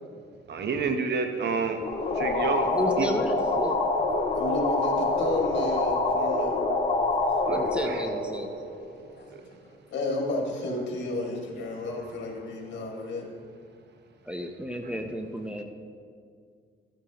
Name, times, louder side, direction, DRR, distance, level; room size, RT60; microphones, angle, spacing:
voice 1, 0.5-1.8 2.1-2.7 3.0-3.1 7.5-8.0 9.3-9.4 14.8-14.9, right 5 dB, 60° right, 6 dB, 1.0 m, -29 dB
sound 1, 1.8-9.2, left 2 dB, 35° left, 1.8 m, -26 dB
voice 2, 2.6-3.8 7.5-8.5 14.3-15.6, equal, 5° right, 4 dB, 0.7 m, -32 dB
voice 3, 4.3-6.5 7.2-7.6 9.2-9.3 9.9-13.2, left 2 dB, 65° left, 0 dB, 2.2 m, -32 dB
14.0 x 8.9 x 3.0 m, 2.1 s
cardioid pair, 90°, 20 cm